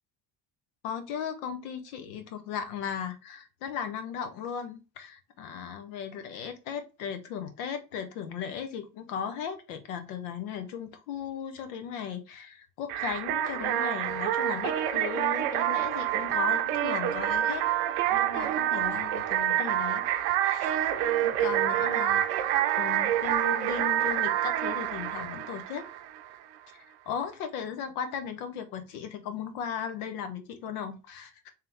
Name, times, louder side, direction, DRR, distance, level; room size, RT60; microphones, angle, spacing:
voice 1, 0.8-17.6 18.1-20.0 20.4-20.9 21.2-22.2 22.8-25.9 26.9-31.5, left 7 dB, 85° left, 8 dB, 0.8 m, -36 dB
sound 1, 12.9-26.3, right 12 dB, 80° right, 0.6 m, -27 dB
3.3 x 3.1 x 3.3 m, 0.30 s
hypercardioid pair, 70°, 42 cm